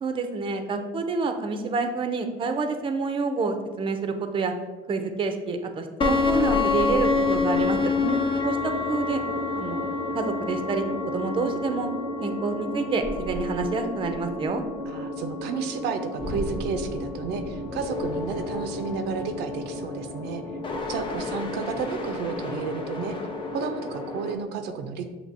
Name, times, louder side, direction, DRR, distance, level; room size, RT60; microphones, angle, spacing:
voice 1, 0.0-4.5 4.9-7.8 8.4-9.2 9.5-11.9 12.2-14.6, right 4 dB, 30° right, 6 dB, 0.5 m, -28 dB
sound 1, 6.0-24.3, left 3 dB, 30° left, 0.6 m, -29 dB
voice 2, 14.9-20.4 20.9-23.1 23.5-25.1, right 5 dB, 85° right, 7 dB, 0.4 m, -32 dB
6.6 x 2.8 x 2.6 m, 1.3 s
cardioid pair, 110°, 17 cm